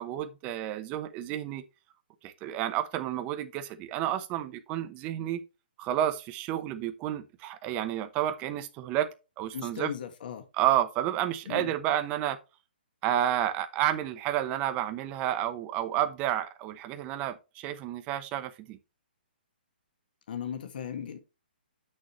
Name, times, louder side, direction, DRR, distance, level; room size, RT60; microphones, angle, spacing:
voice 1, 0.0-1.6 2.2-5.4 5.8-9.1 9.4-9.9 10.5-12.4 13.0-18.8, right 12 dB, 25° right, 0.9 m, -30 dB
voice 2, 9.5-10.4 11.5-11.7 20.3-21.2, left 8 dB, 60° left, 1.7 m, -37 dB
8.4 x 6.5 x 3.1 m
hypercardioid pair, 155°, 6 cm